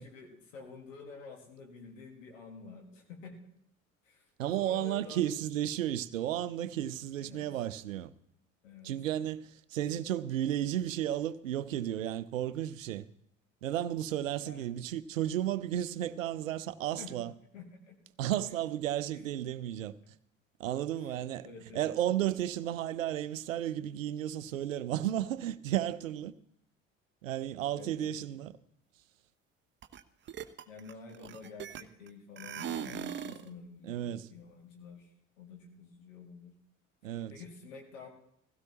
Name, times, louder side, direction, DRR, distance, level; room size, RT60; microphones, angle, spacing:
voice 1, 0.0-3.4 4.0-4.2 4.6-5.3 7.2-7.5 8.6-8.9 14.4-14.6 17.0-17.2 17.5-18.0 21.4-21.9 27.7-28.2 30.7-34.0 34.3-35.1 35.4-36.5 37.3-38.1, left 4 dB, 70° left, 1.9 m, -49 dB
voice 2, 4.4-8.1 8.8-13.0 13.6-17.3 18.2-19.9 20.6-21.5 21.7-26.3 27.2-28.5 33.8-34.3 37.0-37.3, right 12 dB, 75° right, 0.6 m, -33 dB
sound 1, 29.8-30.0 30.3-32.1 32.4-33.5, right 9 dB, 30° right, 0.7 m, -39 dB
16.5 x 16.0 x 3.0 m
figure-of-eight pair, 60°, 39 cm